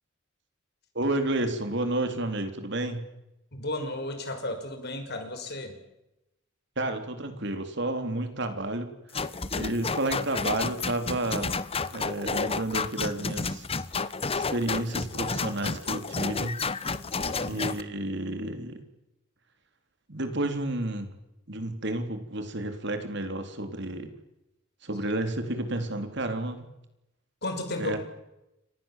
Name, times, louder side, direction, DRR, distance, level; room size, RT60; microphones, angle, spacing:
voice 1, 0.9-3.0 6.8-8.9 9.2-9.3 9.5-11.6 11.9-13.7 14.3-16.6 17.4-18.8 20.1-21.2 21.5-24.1 24.8-26.7 27.8-28.0, right 1 dB, 60° right, 7 dB, 3.7 m, -31 dB
voice 2, 3.5-5.8 17.2-17.7 27.4-28.0, left 1 dB, 55° left, 6 dB, 5.8 m, -34 dB
sound 1, 9.1-17.8, left 4 dB, 30° left, 1.1 m, -31 dB
30.0 x 25.5 x 7.6 m, 0.92 s
head